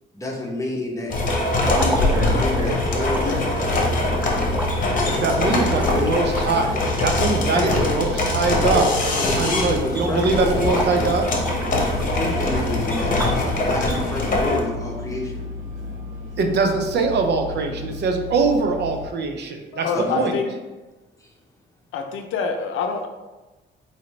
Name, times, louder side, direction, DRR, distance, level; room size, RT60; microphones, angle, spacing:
voice 1, 0.1-1.2 1.6-3.4 5.3-6.2 7.5-8.1 8.7-8.9 9.1-10.8 11.9-15.4 19.9-20.2, left 2 dB, 15° left, -1 dB, 1.0 m, -28 dB
sound 1, 1.1-14.6, left 2 dB, 45° left, 1.0 m, -23 dB
sound 2, 1.6-8.2 8.5-9.0 9.3-11.0 11.3-13.5, right 1 dB, 10° right, 0.5 m, -32 dB
sound 3, 1.9-19.1, left 1 dB, 80° right, 1.0 m, -33 dB
voice 2, 5.2-9.1 9.4-11.3 16.4-19.9 20.1-20.3, right 4 dB, 60° right, 5 dB, 0.6 m, -22 dB
voice 3, 19.7-20.5 21.9-23.1, left 5 dB, 85° left, 5 dB, 0.5 m, -26 dB
4.9 x 2.7 x 3.2 m, 1.1 s
cardioid pair, 90°, 20 cm